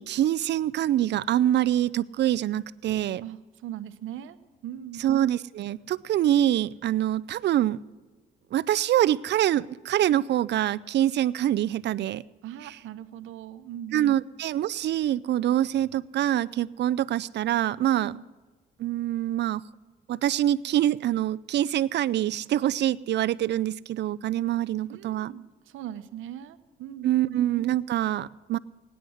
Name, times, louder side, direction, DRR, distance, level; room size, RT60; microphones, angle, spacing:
voice 1, 0.0-3.2 5.0-7.8 8.5-12.2 12.6-12.8 13.9-18.1 18.8-19.6 20.1-25.3 27.0-28.6, right 12 dB, 60° right, 19 dB, 0.4 m, -25 dB
voice 2, 3.2-4.4 4.6-5.0 12.4-14.2 17.9-18.2 24.9-27.4, right 11 dB, 85° right, 11 dB, 0.8 m, -40 dB
18.0 x 10.0 x 6.3 m, 1.3 s
cardioid pair, 90°, 20 cm